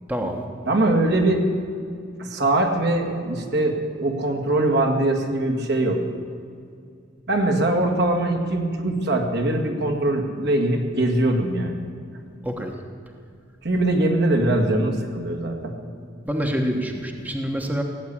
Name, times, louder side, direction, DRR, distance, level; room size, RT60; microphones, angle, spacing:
voice 1, 0.1-0.5 12.4-12.7 16.2-17.8, equal, 10° right, 3 dB, 1.1 m, -26 dB
voice 2, 0.7-1.5 2.2-6.1 7.3-11.9 13.6-15.7, right 1 dB, 60° right, 3 dB, 2.0 m, -22 dB
17.0 x 8.5 x 10.0 m, 2.4 s
head